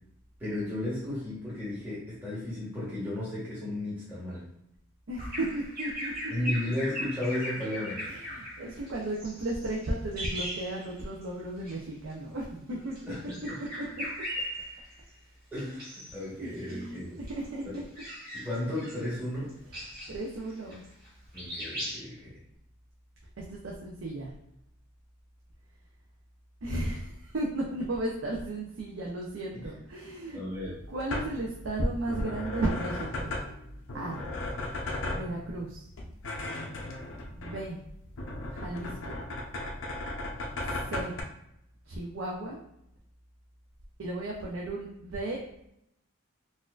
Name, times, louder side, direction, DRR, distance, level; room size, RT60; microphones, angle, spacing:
voice 1, 0.4-4.4 6.3-8.0 13.1-13.5 15.5-17.2 18.4-19.5 21.3-22.4 30.3-30.8, left 1 dB, 10° right, -10 dB, 1.0 m, -34 dB
voice 2, 5.1-6.1 8.1-13.1 13.8-14.0 16.4-17.8 20.1-20.8 23.5-24.3 26.6-30.4 30.9-33.3 33.9-34.2 35.1-35.9 37.3-37.8 38.5-39.1 40.9-41.2 41.9-42.6 44.0-45.4, right 1 dB, 65° right, -3 dB, 0.5 m, -34 dB
Bird vocalization bird call bird song, 5.2-11.2 11.6-11.8 12.8-15.1 15.6-16.2 16.6-21.1 21.3-22.0, equal, 50° right, 1.4 m, -39 dB
sound 1, 30.5-41.2, left 2 dB, 60° left, 0.5 m, -37 dB
4.0 x 2.5 x 2.3 m, 0.77 s
head